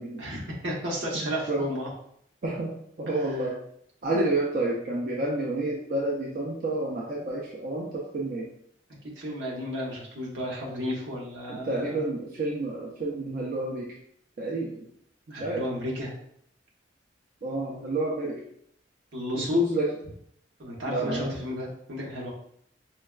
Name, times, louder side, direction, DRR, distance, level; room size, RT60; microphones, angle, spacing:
voice 1, 0.2-1.9 3.2-3.3 9.2-12.1 15.3-16.1 19.1-19.6 20.6-22.3, equal, 85° right, -3 dB, 1.0 m, -33 dB
voice 2, 2.4-3.6 4.0-8.5 11.5-14.0 14.4-14.9 15.3-15.7 17.4-18.4 19.3-19.9 20.9-21.3, right 1 dB, 50° right, -2 dB, 0.5 m, -29 dB
4.4 x 2.2 x 2.2 m, 0.69 s
head